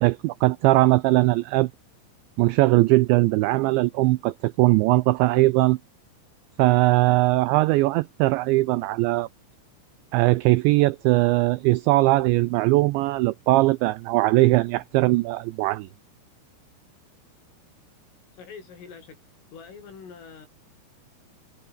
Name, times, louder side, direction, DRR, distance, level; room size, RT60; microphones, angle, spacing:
voice 1, 0.0-1.7 2.4-5.8 6.6-9.3 10.1-15.9, right 20 dB, 85° right, 2.6 m, -20 dB
voice 2, 18.4-19.2 19.5-20.5, left 6 dB, 70° left, 8.9 m, -44 dB
omnidirectional pair, 6.0 m